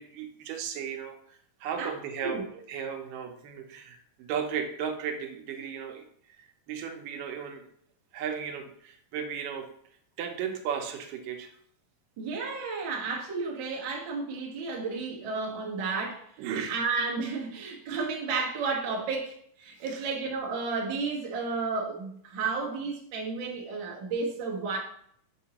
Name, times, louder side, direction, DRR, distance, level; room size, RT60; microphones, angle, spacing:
voice 1, 0.0-6.1 6.4-7.7 8.1-9.7 10.2-11.5 16.4-16.8 19.9-20.0, right 7 dB, 80° right, 4 dB, 2.4 m, -35 dB
voice 2, 1.8-2.4 12.2-16.2 16.7-24.8, right 4 dB, 55° right, -2 dB, 1.3 m, -32 dB
7.2 x 5.3 x 2.9 m, 0.67 s
omnidirectional pair, 3.9 m